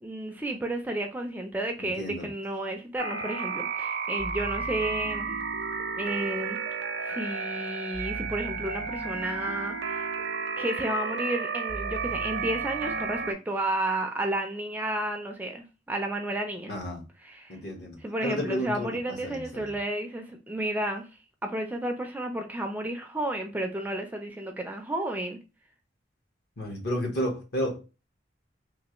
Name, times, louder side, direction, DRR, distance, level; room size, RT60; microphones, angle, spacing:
voice 1, 0.0-5.4 6.0-6.6 7.0-10.1 10.6-16.7 17.2-17.6 18.0-21.1 21.4-25.4, right 1 dB, 10° right, 0.4 m, -32 dB
voice 2, 1.8-2.3 16.7-17.0 17.5-19.7 26.6-27.8, equal, 60° left, 1.0 m, -32 dB
sound 1, 3.0-13.3, right 5 dB, 70° right, 0.5 m, -32 dB
3.2 x 2.4 x 2.8 m
head